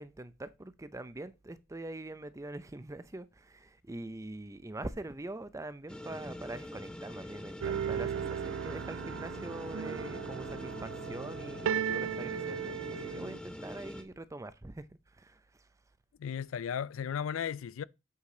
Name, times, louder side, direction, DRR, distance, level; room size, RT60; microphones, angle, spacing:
voice 1, 0.0-15.7, right 2 dB, 15° right, 0.5 m, -44 dB
sound 1, 5.9-14.0, left 1 dB, 5° left, 0.8 m, -44 dB
sound 2, 7.6-13.4, right 8 dB, 75° right, 0.3 m, -36 dB
voice 2, 16.2-17.8, left 8 dB, 85° left, 0.4 m, -35 dB
8.3 x 5.0 x 3.8 m
head